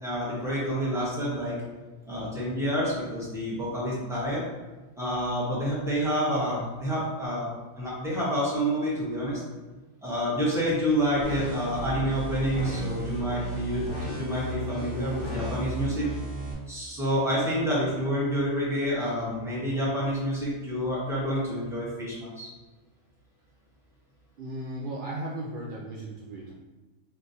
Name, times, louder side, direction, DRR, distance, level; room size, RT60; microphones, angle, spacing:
voice 1, 0.0-1.5 2.1-4.4 5.0-7.5 7.8-9.4 10.0-16.1 16.7-22.5, equal, ahead, -8 dB, 1.3 m, -28 dB
sound 1, 11.2-16.5, right 1 dB, 20° left, 1.1 m, -34 dB
voice 2, 24.4-26.5, right 1 dB, 65° right, -4 dB, 0.5 m, -36 dB
4.7 x 3.2 x 2.7 m, 1.2 s
omnidirectional pair, 1.5 m